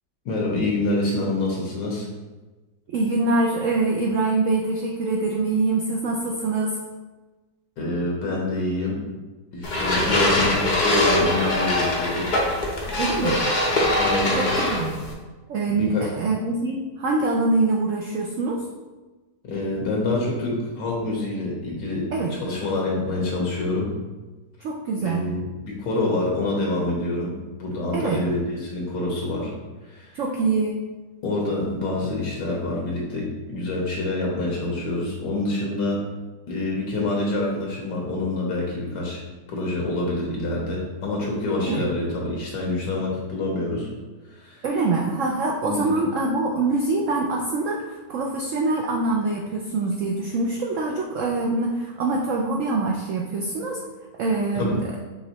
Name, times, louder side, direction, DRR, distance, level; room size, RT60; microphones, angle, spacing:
voice 1, 0.2-2.1 7.8-9.0 9.5-12.3 14.0-14.4 14.7-14.8 15.7-16.1 19.5-24.0 25.0-27.3 27.6-29.5 29.8-30.2 31.2-36.0 36.5-39.2 39.5-43.9 44.4-44.6 45.6-45.9 54.5-54.8, left 2 dB, 80° left, -2 dB, 1.5 m, -26 dB
voice 2, 2.9-6.8 10.1-10.4 13.0-13.4 14.3-14.9 15.5-18.6 22.1-22.3 24.6-25.2 27.9-28.2 30.1-30.8 41.7-41.8 44.6-53.8 54.2-54.8, right 3 dB, 80° right, -1 dB, 0.7 m, -24 dB
sound 1, 9.6-15.1, left 1 dB, 65° left, 0.4 m, -22 dB
5.3 x 3.0 x 2.9 m, 1.2 s
omnidirectional pair, 1.9 m